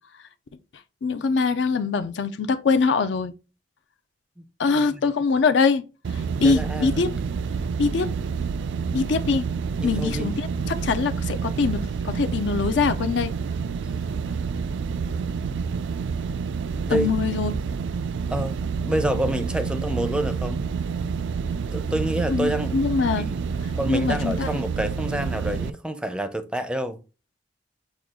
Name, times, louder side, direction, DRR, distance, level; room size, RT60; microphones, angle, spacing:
voice 1, 1.0-3.3 4.6-5.8 6.4-7.1 7.8-8.1 8.9-9.5 9.8-13.3 16.9-17.5 22.3-23.3 23.9-24.5, left 4 dB, 75° left, 0.5 m, -23 dB
sound 1, 6.0-25.7, right 5 dB, 85° right, 0.3 m, -28 dB
voice 2, 6.4-7.0 9.8-10.3 16.8-17.1 18.3-18.6 18.8-20.6 21.7-22.8 23.2-27.0, right 1 dB, 5° right, 0.4 m, -28 dB
6.3 x 2.3 x 3.6 m
head